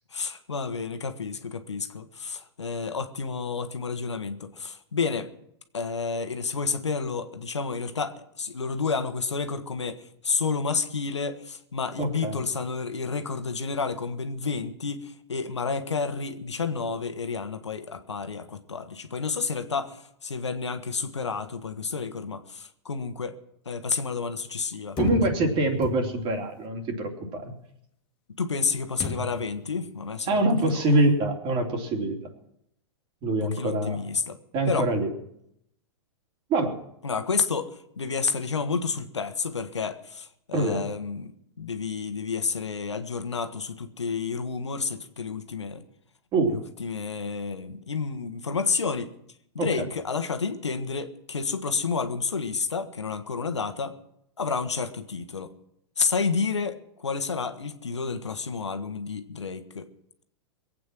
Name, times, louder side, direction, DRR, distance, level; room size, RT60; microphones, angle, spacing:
voice 1, 0.1-5.3 5.7-23.3 23.6-25.0 28.4-30.9 33.3-34.4 34.7-34.9 37.0-41.3 41.6-45.8 46.5-49.1 49.5-53.9 54.4-55.5 56.0-59.9, left 5 dB, 90° left, 8 dB, 1.3 m, -30 dB
voice 2, 12.0-12.5 25.0-27.5 30.3-32.2 33.2-34.0 34.5-35.1 36.5-36.8 40.5-40.9 46.3-46.6 49.6-49.9, right 2 dB, 35° right, 3 dB, 3.2 m, -25 dB
sound 1, 25.0-26.4 29.0-29.6, left 5 dB, 35° left, 1.9 m, -33 dB
22.5 x 8.5 x 6.1 m, 0.75 s
hypercardioid pair, 105°, 14 cm